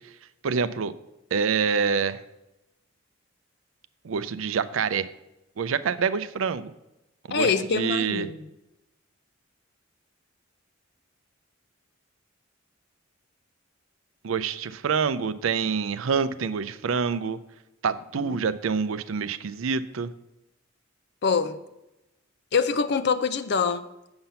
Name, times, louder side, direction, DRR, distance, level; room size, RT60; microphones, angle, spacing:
voice 1, 0.4-0.9 1.3-2.2 4.0-5.1 5.6-6.7 7.3-8.3 14.2-17.4 17.8-20.1, right 6 dB, 90° right, 14 dB, 0.5 m, -26 dB
voice 2, 7.3-8.4 18.2-18.4 21.2-21.6 22.5-23.8, left 5 dB, 55° left, 11 dB, 0.5 m, -24 dB
7.8 x 5.7 x 5.6 m, 0.92 s
head